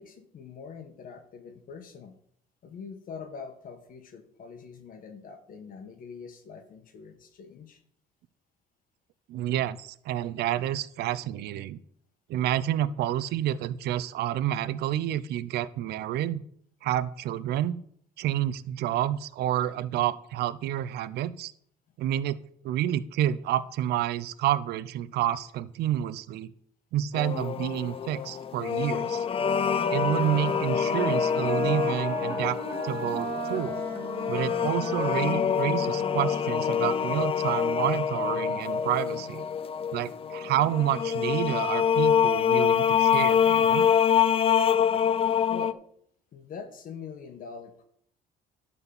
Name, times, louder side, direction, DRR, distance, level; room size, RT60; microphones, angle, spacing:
voice 1, 0.0-2.1 2.6-7.8 45.5-45.8 46.3-47.8, left 6 dB, 55° left, 6 dB, 1.6 m, -43 dB
voice 2, 9.3-11.8 12.3-16.4 16.8-17.8 18.2-21.5 22.0-26.5 26.9-29.3 29.9-32.6 32.8-33.8 34.3-39.4 39.9-43.9, right 12 dB, 75° right, 15 dB, 0.6 m, -29 dB
sound 1, 27.1-45.7, left 8 dB, 35° left, 0.5 m, -26 dB
Wind instrument woodwind instrument, 29.4-36.9, right 3 dB, 20° right, 2.4 m, -38 dB
11.5 x 4.3 x 7.1 m, 0.66 s
cardioid pair, 110°, 17 cm